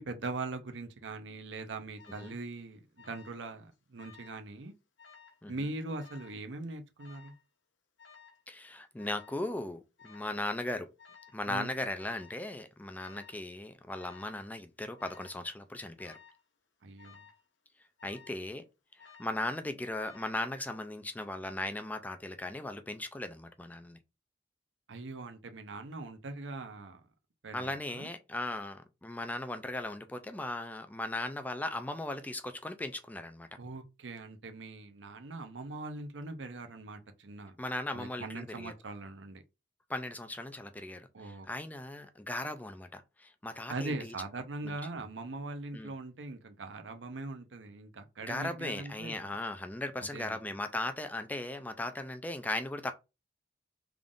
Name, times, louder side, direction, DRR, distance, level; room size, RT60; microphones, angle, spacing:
voice 1, 0.0-4.7 5.5-7.3 11.5-11.7 16.8-17.2 24.9-27.0 27.4-28.1 33.6-37.6 37.9-39.4 41.1-41.5 43.7-49.2 50.1-50.4, right 2 dB, 75° right, 0.7 m, -41 dB
Alarm, 2.0-2.4 3.0-3.5 3.7-4.4 5.0-5.4 6.0-6.4 7.0-7.4 8.0-8.4 9.0-9.4 10.0-10.4 11.0-11.4 12.0-12.4 13.0-13.4 14.0-14.4 15.0-15.4 16.0-16.4 17.0-17.4 18.0-18.5 19.0-19.5 20.0-20.5, left 6 dB, 80° left, 0.9 m, -56 dB
voice 2, 8.5-10.9 11.3-16.2 18.0-18.7 18.9-24.0 27.5-33.5 37.6-38.7 39.9-44.1 44.6-45.0 45.7-45.9 48.2-52.9, left 2 dB, 10° left, 0.3 m, -38 dB
3.5 x 2.4 x 3.7 m
head